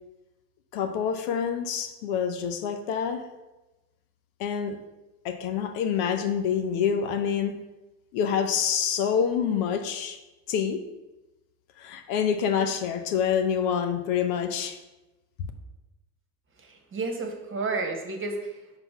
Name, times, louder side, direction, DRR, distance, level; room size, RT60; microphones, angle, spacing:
voice 1, 0.7-3.3 4.4-4.8 5.2-7.6 8.1-10.2 10.5-10.8 11.8-14.8, left 7 dB, 75° left, 7 dB, 0.8 m, -27 dB
voice 2, 16.6-18.7, right 3 dB, 30° right, 3 dB, 1.4 m, -32 dB
5.3 x 3.9 x 5.9 m, 1.0 s
supercardioid pair, 90°, 43 cm